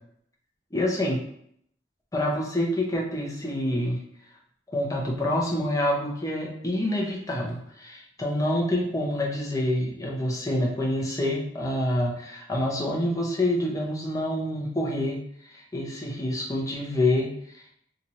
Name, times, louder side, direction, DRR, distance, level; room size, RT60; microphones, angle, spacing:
voice 1, 0.7-1.2 2.1-4.0 4.7-17.7, left 1 dB, 20° left, -3 dB, 0.7 m, -27 dB
2.9 x 2.5 x 4.1 m, 0.69 s
head